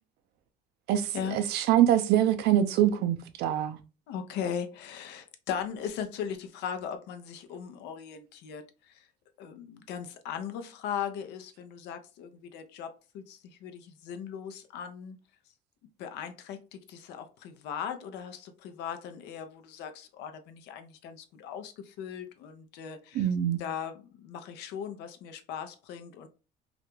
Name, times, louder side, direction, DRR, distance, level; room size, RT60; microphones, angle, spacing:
voice 1, 0.9-3.8 23.1-23.6, right 11 dB, 80° right, 0.4 m, -24 dB
voice 2, 4.1-9.1 9.4-15.2 16.0-23.3 23.6-26.3, left 8 dB, 85° left, 0.5 m, -38 dB
2.4 x 2.2 x 2.9 m
cardioid pair, 110°, 17 cm